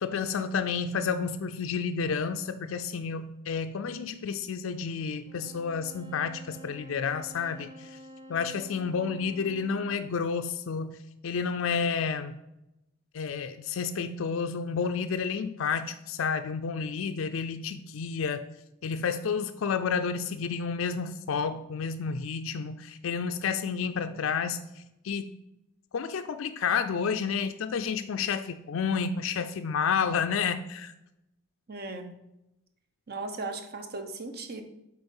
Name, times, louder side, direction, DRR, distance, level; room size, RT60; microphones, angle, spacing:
voice 1, 0.0-8.0 8.3-11.0 11.2-12.4 13.1-18.5 18.8-25.3 25.9-30.9, left 6 dB, 75° left, 9 dB, 0.4 m, -30 dB
sound 1, 5.3-10.1, equal, 25° right, 1.3 m, -49 dB
voice 2, 24.1-24.4 31.7-32.2 33.1-34.6, right 3 dB, 50° right, 7 dB, 0.9 m, -38 dB
7.9 x 4.4 x 5.5 m, 0.89 s
head